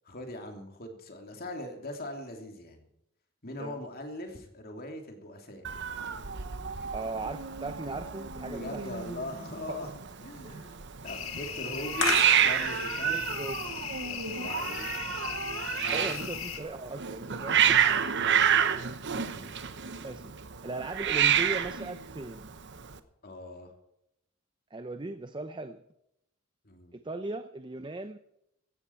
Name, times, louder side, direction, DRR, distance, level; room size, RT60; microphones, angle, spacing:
voice 1, 0.0-2.9 3.4-5.7 8.5-9.9 10.2-13.2 14.0-15.1 15.8-16.2 18.1-18.9 19.2-19.7 23.2-23.7 26.6-26.9, left 1 dB, 45° left, 3 dB, 2.9 m, -41 dB
Hiss, 5.6-23.0, right 8 dB, 55° right, 1.0 m, -29 dB
voice 2, 6.9-8.9 9.7-9.8 10.4-10.5 13.1-13.6 15.9-17.8 20.0-20.2 20.6-22.5 24.7-25.8 26.9-28.2, right 2 dB, 20° right, 10 dB, 0.6 m, -38 dB
sound 1, 11.1-16.6, left 7 dB, 70° left, 2.1 m, -35 dB
16.5 x 13.0 x 4.6 m, 0.80 s
head